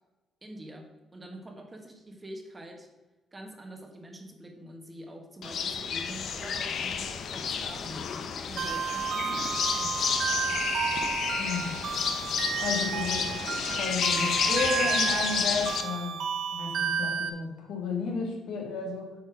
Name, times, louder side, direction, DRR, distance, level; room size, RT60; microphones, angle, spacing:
voice 1, 0.4-2.9 3.3-8.0 8.4-9.9, right 1 dB, 20° right, 3 dB, 1.6 m, -45 dB
sound 1, 5.4-15.8, left 6 dB, 65° left, 0.8 m, -30 dB
sound 2, 8.6-17.3, right 7 dB, 70° right, 0.9 m, -32 dB
voice 2, 11.4-11.8 12.6-13.5 13.8-16.2 16.5-19.1, left 4 dB, 80° left, 1 dB, 1.8 m, -33 dB
8.3 x 4.3 x 6.3 m, 1.1 s
cardioid pair, 90°, 0 cm